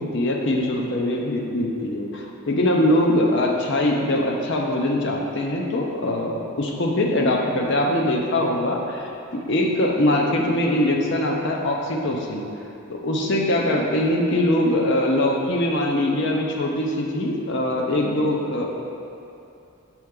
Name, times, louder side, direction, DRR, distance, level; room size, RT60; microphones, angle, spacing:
voice 1, 0.0-12.5 12.9-18.7, left 1 dB, 50° left, 0 dB, 0.6 m, -22 dB
6.5 x 4.5 x 3.7 m, 2.7 s
head